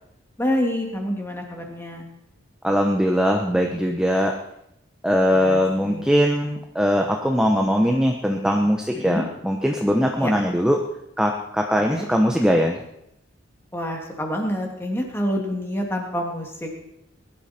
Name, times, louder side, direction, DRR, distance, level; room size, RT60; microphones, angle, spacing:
voice 1, 0.4-2.1 5.3-6.0 8.9-9.2 10.2-10.3 11.8-12.1 13.7-16.7, equal, 10° left, 1 dB, 2.3 m, -27 dB
voice 2, 2.6-4.3 5.0-10.8 11.2-12.8, equal, 5° right, 2 dB, 0.9 m, -21 dB
20.5 x 12.0 x 4.4 m, 0.81 s
head